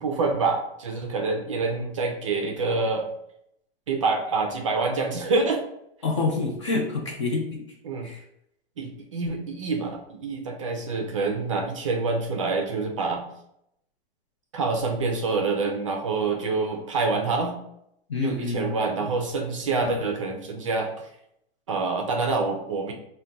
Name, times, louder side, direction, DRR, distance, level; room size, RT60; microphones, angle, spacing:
voice 1, 0.0-3.0 3.9-5.6 7.8-8.1 8.8-13.3 14.5-17.6 18.2-20.9 21.7-22.9, right 3 dB, 35° right, 2 dB, 0.4 m, -26 dB
voice 2, 6.0-7.6 8.0-8.2 18.1-18.8 19.8-20.0, left 3 dB, 30° left, 0 dB, 0.4 m, -27 dB
4.5 x 2.2 x 3.8 m, 0.76 s
supercardioid pair, 180°, 30 cm